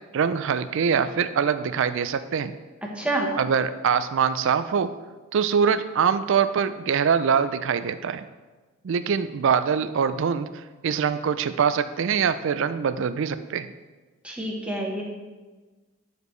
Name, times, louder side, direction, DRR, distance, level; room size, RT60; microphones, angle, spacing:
voice 1, 0.1-2.5 3.4-4.9 5.3-8.2 8.8-10.5 10.8-13.7, right 7 dB, 60° right, 12 dB, 0.3 m, -23 dB
voice 2, 3.0-3.3 14.2-15.0, right 1 dB, 5° right, -2 dB, 1.0 m, -27 dB
9.5 x 5.1 x 3.2 m, 1.3 s
head